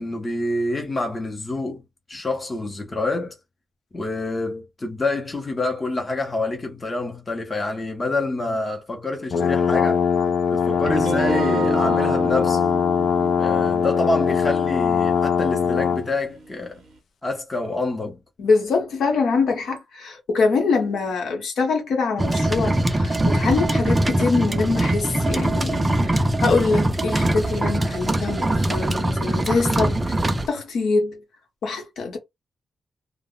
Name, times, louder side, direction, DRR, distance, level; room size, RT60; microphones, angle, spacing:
voice 1, 0.0-1.8 2.1-3.4 3.9-10.0 10.5-12.7 13.4-16.8 17.2-18.2, left 2 dB, 20° left, 0.6 m, -27 dB
sound 1, 9.3-16.1, left 6 dB, 70° left, 0.4 m, -21 dB
sound 2, 10.7-16.6, right 4 dB, 70° right, 0.5 m, -31 dB
voice 2, 18.4-30.2 30.5-31.2 31.6-32.2, left 4 dB, 90° left, 0.9 m, -24 dB
sound 3, 22.2-30.5, right 1 dB, 15° right, 0.3 m, -22 dB
2.0 x 2.0 x 3.6 m
wide cardioid pair, 170°, 0 cm